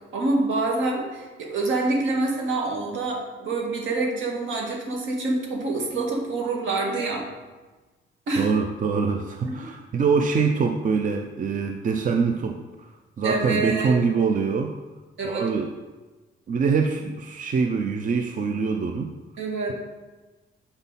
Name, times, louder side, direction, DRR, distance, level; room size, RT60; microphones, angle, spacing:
voice 1, 0.1-7.3 8.3-8.5 9.4-9.7 13.2-13.9 15.2-15.5 19.4-19.7, right 3 dB, 75° right, -1 dB, 2.1 m, -26 dB
voice 2, 8.4-14.7 15.2-15.7 16.5-19.1, right 5 dB, 40° right, 4 dB, 0.6 m, -24 dB
8.0 x 5.4 x 4.1 m, 1.2 s
cardioid pair, 90°, 20 cm